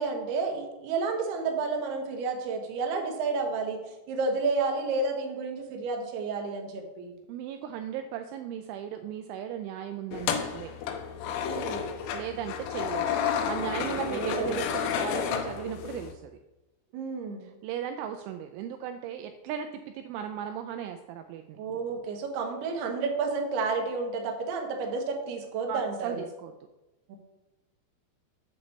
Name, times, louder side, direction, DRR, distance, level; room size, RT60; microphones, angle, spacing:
voice 1, 0.0-3.8 4.1-7.1 11.4-11.9 13.8-14.6 16.9-17.5 21.6-26.2 27.1-27.2, right 4 dB, 65° right, 2 dB, 2.7 m, -31 dB
voice 2, 7.3-10.7 12.1-13.1 13.5-16.3 17.4-19.7 19.9-21.6 25.7-26.5, right 9 dB, 85° right, 7 dB, 2.7 m, -36 dB
sound 1, 10.1-16.1, left 7 dB, 85° left, 3.4 m, -31 dB
8.2 x 5.2 x 7.1 m, 1.0 s
omnidirectional pair, 5.9 m